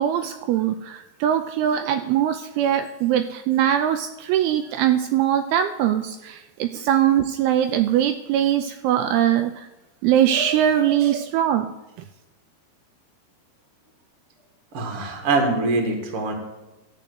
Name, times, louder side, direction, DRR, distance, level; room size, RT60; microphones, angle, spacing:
voice 1, 0.0-9.7 10.0-11.7, right 10 dB, 85° right, 8 dB, 2.4 m, -21 dB
voice 2, 14.7-16.3, right 3 dB, 45° right, 2 dB, 2.1 m, -23 dB
13.5 x 5.2 x 7.6 m, 1.0 s
omnidirectional pair, 4.6 m